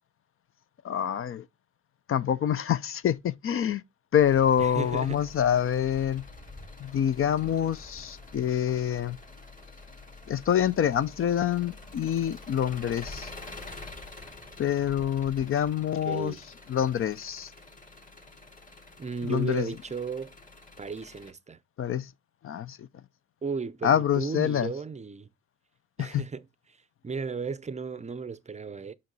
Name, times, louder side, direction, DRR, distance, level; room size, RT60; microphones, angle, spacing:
voice 1, 0.8-1.5 2.1-3.8 4.1-6.2 6.8-9.2 10.3-13.3 14.6-16.4 16.7-17.5 19.2-19.7 21.8-22.1 22.4-22.9 23.8-24.7 26.0-26.2, left 9 dB, 45° left, 0.5 m, -26 dB
Engine, 4.2-21.3, left 2 dB, 25° left, 2.0 m, -47 dB
voice 2, 4.6-5.3 16.1-16.4 19.0-20.3 20.8-21.6 23.4-25.3 26.0-26.4 27.0-28.9, right 5 dB, 20° right, 0.5 m, -34 dB
5.7 x 5.1 x 3.9 m
supercardioid pair, 70°, 31 cm